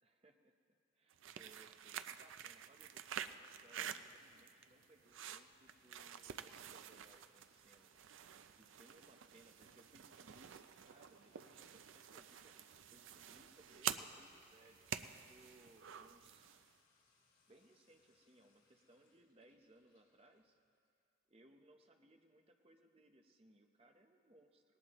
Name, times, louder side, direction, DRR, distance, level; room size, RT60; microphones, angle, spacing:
voice 1, 0.0-0.6 0.9-7.9 8.6-16.5 17.5-20.6 21.3-24.6, right 1 dB, 30° right, 4 dB, 0.8 m, -67 dB
sound 1, 1.1-16.7, right 9 dB, 70° right, 0.4 m, -49 dB
Sink (filling or washing) / Trickle dribble / Fill (with liquid), 3.6-21.0, left 3 dB, 70° left, 4.5 m, -77 dB
18.5 x 18.5 x 3.0 m, 2.4 s
head